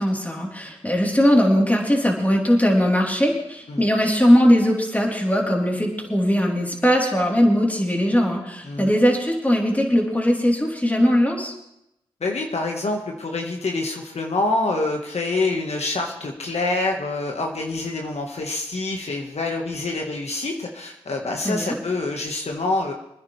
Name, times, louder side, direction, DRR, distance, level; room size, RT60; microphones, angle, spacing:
voice 1, 0.0-11.5 21.4-21.8, equal, 15° left, -1 dB, 3.7 m, -20 dB
voice 2, 8.6-9.0 12.2-22.9, left 2 dB, 70° left, 1 dB, 1.6 m, -26 dB
25.0 x 9.9 x 3.4 m, 0.81 s
cardioid pair, 45°, 11 cm